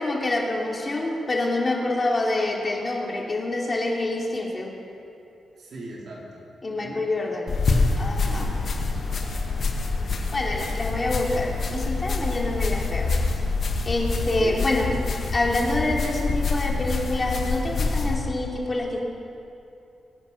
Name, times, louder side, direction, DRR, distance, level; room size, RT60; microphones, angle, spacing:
voice 1, 0.0-4.7 6.6-7.6 8.0-8.5 10.3-13.1 13.8-14.9 15.3-19.0, left 2 dB, 35° left, -1 dB, 3.1 m, -26 dB
voice 2, 5.6-7.0 8.2-8.8 9.1-9.6 14.4-14.7, right 2 dB, 65° right, -4 dB, 4.3 m, -40 dB
sound 1, 7.5-18.2, left 3 dB, 60° left, 2.0 m, -26 dB
22.5 x 9.0 x 6.2 m, 2.7 s
supercardioid pair, 55°, 0 cm